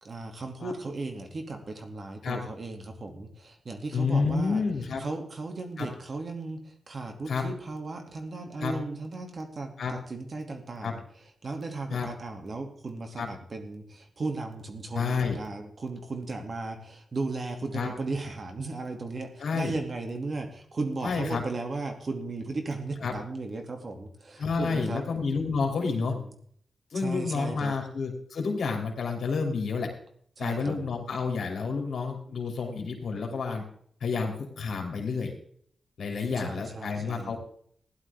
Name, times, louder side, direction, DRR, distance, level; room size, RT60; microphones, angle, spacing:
voice 1, 0.0-4.6 5.0-11.0 11.4-25.1 25.8-26.3 26.9-27.7 30.4-30.8 36.0-37.4, right 3 dB, 50° right, 4 dB, 2.5 m, -36 dB
voice 2, 3.9-5.0 5.8-5.9 7.3-7.4 8.6-8.7 9.8-9.9 10.8-10.9 11.9-12.1 13.2-13.3 14.9-15.4 17.7-17.9 19.4-19.7 21.0-21.4 23.0-23.1 24.4-26.1 26.9-29.9 30.4-33.6 34.0-35.3 36.0-37.4, left 5 dB, 80° left, 3 dB, 2.9 m, -29 dB
16.0 x 11.5 x 3.6 m, 0.62 s
cardioid pair, 75°, 0 cm